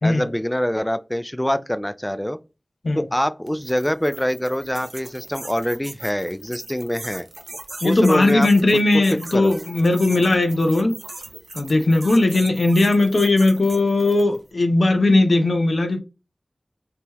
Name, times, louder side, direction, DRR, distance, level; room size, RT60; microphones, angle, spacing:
voice 1, 0.0-2.4 3.0-7.3 7.8-8.8 9.1-9.5, equal, 10° left, 0.3 m, -24 dB
sound 1, 3.5-14.4, right 2 dB, 70° right, 0.8 m, -39 dB
voice 2, 7.8-10.9 11.5-16.0, left 2 dB, 85° left, 0.6 m, -18 dB
3.7 x 2.8 x 3.0 m
wide cardioid pair, 50°, 0 cm